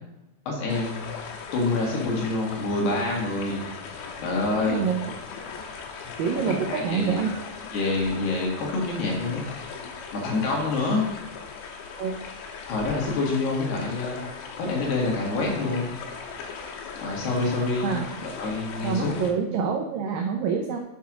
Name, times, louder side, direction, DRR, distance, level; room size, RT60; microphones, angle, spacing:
voice 1, 0.5-1.0 1.5-3.7 4.2-4.9 6.5-7.2 7.7-9.5 10.1-11.1 12.7-15.9 17.0-17.9 18.2-19.2, left 3 dB, 70° left, -1 dB, 3.8 m, -27 dB
sound 1, 0.7-19.3, left 5 dB, 85° left, 3.5 m, -38 dB
voice 2, 4.5-5.0 6.2-7.3 12.0-12.1 17.8-18.1 18.8-20.8, right 6 dB, 90° right, 2 dB, 1.9 m, -26 dB
7.1 x 5.9 x 6.2 m, 0.92 s
omnidirectional pair, 5.1 m